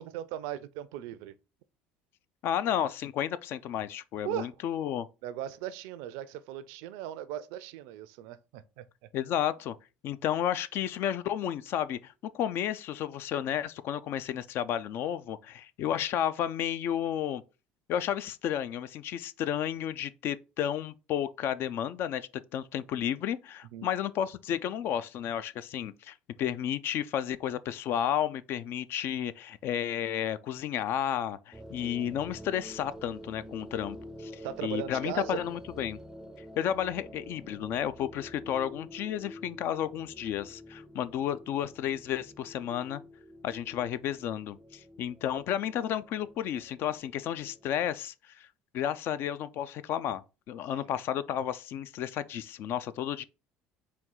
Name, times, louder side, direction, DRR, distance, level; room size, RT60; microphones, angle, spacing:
voice 1, 0.0-1.3 4.2-4.5 5.2-8.8 23.7-23.9 34.4-35.5 50.7-50.9, right 12 dB, 75° right, 0.4 m, -38 dB
voice 2, 2.4-5.1 9.1-9.8 10.0-17.4 17.9-36.0 36.6-43.0 43.4-48.5 48.7-53.2, left 10 dB, 55° left, 0.3 m, -32 dB
sound 1, 31.5-47.9, equal, 10° right, 0.4 m, -48 dB
4.2 x 2.3 x 3.7 m
hypercardioid pair, 80°, 5 cm